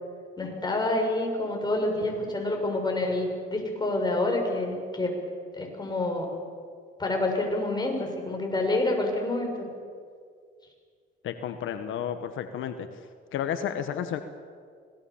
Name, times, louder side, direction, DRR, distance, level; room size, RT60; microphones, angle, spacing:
voice 1, 0.4-5.2 5.6-6.3 7.0-9.6, left 2 dB, 20° left, 1 dB, 6.5 m, -28 dB
voice 2, 11.2-12.9 13.3-14.2, left 9 dB, 80° left, 8 dB, 1.3 m, -31 dB
26.0 x 19.0 x 7.2 m, 2.1 s
cardioid pair, 90°, 20 cm